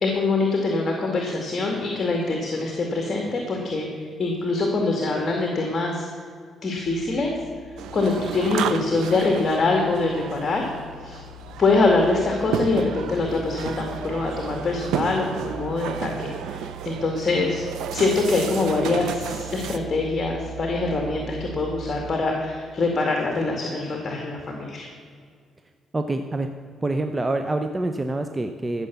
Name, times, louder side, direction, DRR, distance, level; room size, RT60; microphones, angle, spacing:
voice 1, 0.0-6.1 6.6-7.4 7.9-10.7 11.0-11.2 11.6-17.6 17.9-24.9, left 3 dB, 35° left, 1 dB, 2.2 m, -24 dB
sound 1, 6.8-22.2, right 4 dB, 65° right, 1.9 m, -41 dB
sound 2, 7.8-19.8, right 8 dB, 85° right, 0.7 m, -33 dB
voice 2, 25.9-26.5 26.8-28.9, right 2 dB, 20° right, 7 dB, 0.7 m, -26 dB
14.5 x 7.2 x 6.9 m, 2.1 s
cardioid pair, 90°, 0 cm